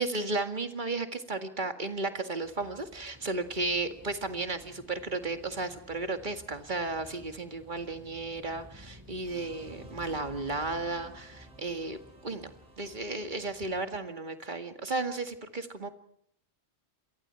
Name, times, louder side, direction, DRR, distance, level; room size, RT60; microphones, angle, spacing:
voice 1, 0.0-12.0 12.2-12.5 12.8-15.9, right 3 dB, 45° right, 6 dB, 2.1 m, -34 dB
sound 1, 2.4-13.8, left 1 dB, 15° right, 8.2 m, -54 dB
Emotive film music, 9.2-14.6, right 2 dB, 80° right, 4.6 m, -56 dB
28.5 x 23.0 x 4.6 m, 0.69 s
omnidirectional pair, 1.2 m